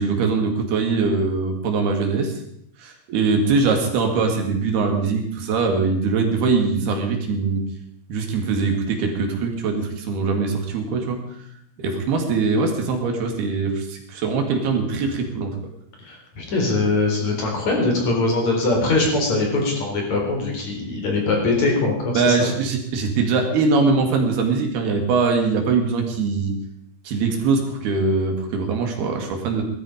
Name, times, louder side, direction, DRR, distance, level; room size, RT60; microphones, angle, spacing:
voice 1, 0.0-2.4 2.8-7.6 8.1-11.2 11.8-15.6 22.1-26.5 27.1-29.6, right 4 dB, 70° right, 4 dB, 4.2 m, -22 dB
voice 2, 16.0-22.5, left 3 dB, 45° left, 1 dB, 5.1 m, -22 dB
19.0 x 13.5 x 5.1 m, 0.72 s
omnidirectional pair, 4.9 m